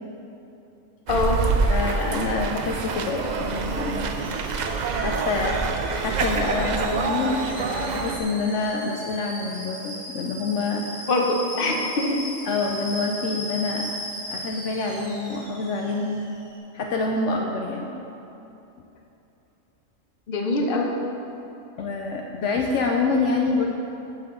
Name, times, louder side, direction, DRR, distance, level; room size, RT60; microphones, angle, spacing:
voice 1, 1.1-1.4 11.0-12.2 20.3-21.0, left 2 dB, 50° left, 1 dB, 1.0 m, -23 dB
sound 1, 1.1-8.2, right 4 dB, 65° right, 0.4 m, -26 dB
voice 2, 1.7-4.1 5.0-5.7 5.9-11.0 12.5-13.9 14.3-16.3 16.7-17.9 21.8-23.8, left 3 dB, 70° left, 1 dB, 0.9 m, -26 dB
Alarm / Boiling, 2.0-16.6, equal, 30° right, 1.6 m, -38 dB
14.0 x 5.7 x 3.7 m, 2.9 s
omnidirectional pair, 1.4 m